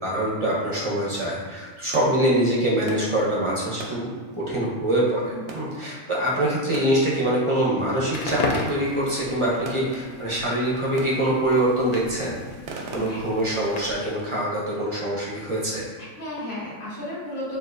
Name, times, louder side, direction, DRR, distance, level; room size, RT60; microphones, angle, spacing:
voice 1, 0.0-4.1 4.4-12.4 12.9-15.8, right 1 dB, 30° right, -6 dB, 0.6 m, -24 dB
sound 1, 1.3-16.7, right 2 dB, 65° right, 0.8 m, -43 dB
Crackle, 8.0-14.2, left 2 dB, 65° left, 0.4 m, -35 dB
sound 2, 9.0-14.6, right 2 dB, 85° left, 1.1 m, -50 dB
voice 2, 12.8-13.3 16.0-17.6, left 1 dB, 45° left, -9 dB, 1.6 m, -34 dB
6.4 x 2.3 x 2.6 m, 1.4 s
omnidirectional pair, 1.4 m